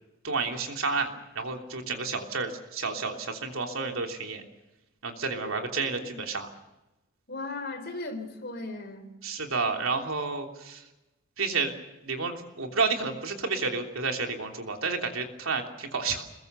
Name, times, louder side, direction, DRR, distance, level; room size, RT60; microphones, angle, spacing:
voice 1, 0.2-1.1 1.3-4.4 5.0-6.5 9.2-10.8 11.4-11.7 12.0-16.2, right 4 dB, 80° right, 3 dB, 3.2 m, -30 dB
voice 2, 5.3-6.2 7.3-9.1, left 2 dB, 50° left, 7 dB, 3.8 m, -38 dB
26.0 x 21.5 x 6.9 m, 1.0 s
head